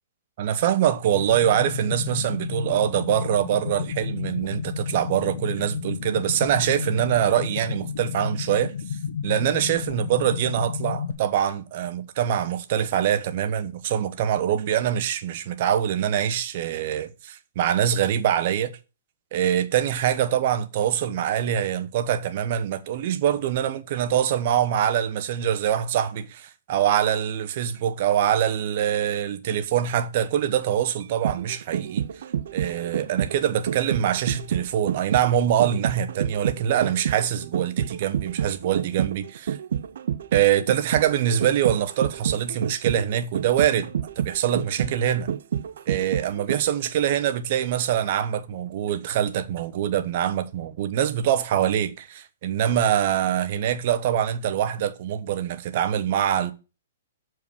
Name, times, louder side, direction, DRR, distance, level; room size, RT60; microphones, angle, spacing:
voice 1, 0.4-8.7 9.2-18.7 19.3-32.1 32.5-39.6 40.3-43.9 44.2-45.3 45.9-56.5, right 10 dB, 50° right, 1.0 m, -24 dB
sound 1, 1.1-11.1, left 7 dB, 70° left, 1.2 m, -32 dB
sound 2, 31.0-46.9 47.2-47.3, right 9 dB, 70° right, 0.5 m, -29 dB
7.2 x 4.7 x 6.2 m
hypercardioid pair, 140°, 0 cm